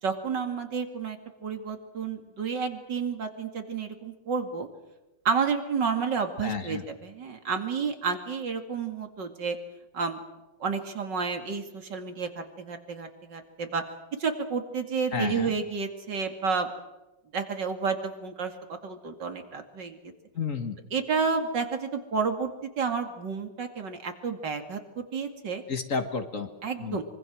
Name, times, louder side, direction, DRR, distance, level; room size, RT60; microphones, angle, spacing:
voice 1, 0.0-4.7 5.2-9.6 9.9-10.2 10.6-13.8 14.2-16.7 17.3-20.0 20.9-25.6 26.6-27.0, right 5 dB, 75° right, 6 dB, 3.0 m, -30 dB
voice 2, 6.4-6.8 15.1-15.5 20.4-20.8 25.7-26.5 26.8-27.0, left 5 dB, 45° left, 7 dB, 2.1 m, -31 dB
25.0 x 24.0 x 6.3 m, 1.0 s
omnidirectional pair, 1.9 m